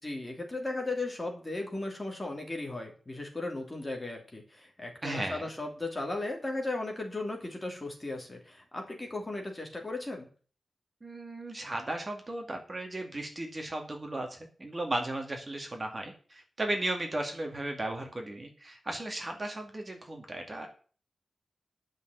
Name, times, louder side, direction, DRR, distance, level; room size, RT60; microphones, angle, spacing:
voice 1, 0.0-10.3, left 2 dB, 20° left, 1 dB, 3.1 m, -36 dB
voice 2, 5.0-5.5 11.0-20.7, right 1 dB, 25° right, 3 dB, 2.3 m, -35 dB
11.0 x 6.4 x 8.0 m, 0.40 s
wide cardioid pair, 145°, 0 cm